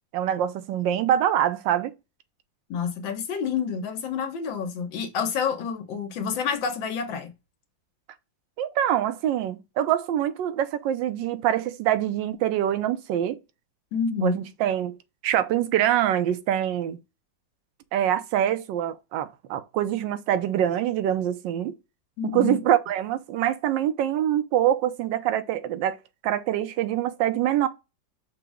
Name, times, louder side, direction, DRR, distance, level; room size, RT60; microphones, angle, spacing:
voice 1, 0.1-1.9 8.6-13.4 14.2-15.0 15.2-17.0 17.9-21.7 22.2-26.0 26.2-27.7, right 11 dB, 80° right, 1.3 m, -25 dB
voice 2, 2.7-7.3 13.9-14.4 22.2-22.6, left 6 dB, 85° left, 1.6 m, -28 dB
5.7 x 2.1 x 3.5 m
omnidirectional pair, 2.0 m